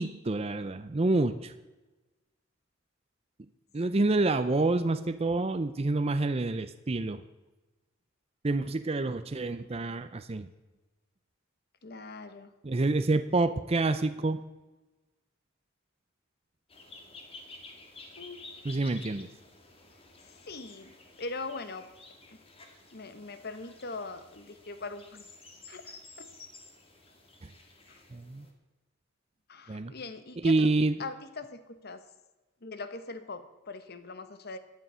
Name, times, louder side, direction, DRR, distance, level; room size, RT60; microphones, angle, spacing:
voice 1, 0.0-1.5 3.7-7.2 8.4-10.5 12.6-14.4 18.6-19.3 28.1-28.4 29.7-29.9 30.4-31.0, right 2 dB, 30° right, 10 dB, 0.5 m, -27 dB
voice 2, 11.8-12.5 18.2-18.4 20.2-20.9 21.2-21.9 22.9-25.3 25.7-26.3 27.9-28.0 29.5-30.7 31.0-32.0 32.6-34.6, left 3 dB, 50° left, 11 dB, 1.2 m, -41 dB
sound 1, 16.7-28.5, left 3 dB, 30° left, 2.0 m, -52 dB
15.0 x 10.5 x 5.6 m, 1.1 s
head